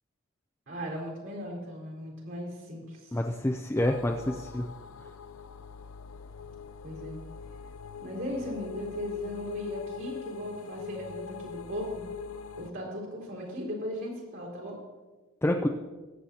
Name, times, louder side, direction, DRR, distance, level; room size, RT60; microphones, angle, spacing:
voice 1, 0.7-3.2 6.8-7.2 8.0-12.0 12.6-14.8, equal, 65° right, -4 dB, 3.9 m, -37 dB
voice 2, 3.1-4.7 15.4-15.7, left 1 dB, 10° left, 2 dB, 0.4 m, -27 dB
sound 1, 3.8-12.7, left 6 dB, 75° left, 0.5 m, -42 dB
22.5 x 7.9 x 2.9 m, 1.3 s
head